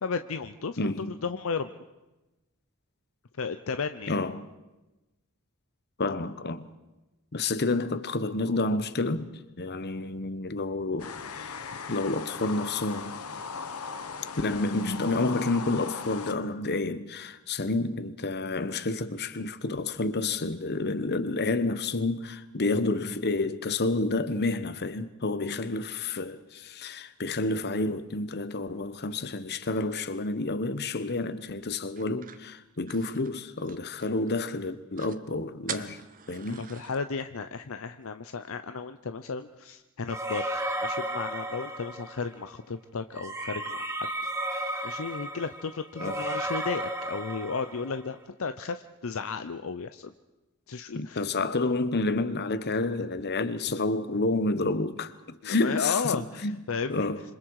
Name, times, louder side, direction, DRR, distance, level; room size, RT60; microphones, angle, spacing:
voice 1, 0.0-1.7 3.4-4.2 36.5-40.4 40.8-43.8 44.8-50.1 50.7-51.3 55.4-57.1, left 5 dB, 65° left, 0.7 m, -34 dB
voice 2, 0.8-1.2 4.1-4.4 6.0-6.7 7.3-11.6 11.9-13.2 14.4-36.0 36.3-36.7 46.0-46.2 50.9-56.2 56.4-56.6 56.9-57.2, left 2 dB, 50° left, 1.1 m, -29 dB
sound 1, 11.0-16.3, left 5 dB, 90° left, 1.3 m, -38 dB
sound 2, 32.0-34.3 34.6-34.7 34.9-35.2 35.7-37.0, right 8 dB, 40° right, 1.0 m, -43 dB
sound 3, 40.1-42.3 43.1-48.0, right 1 dB, 15° right, 2.6 m, -33 dB
27.0 x 26.0 x 4.8 m
head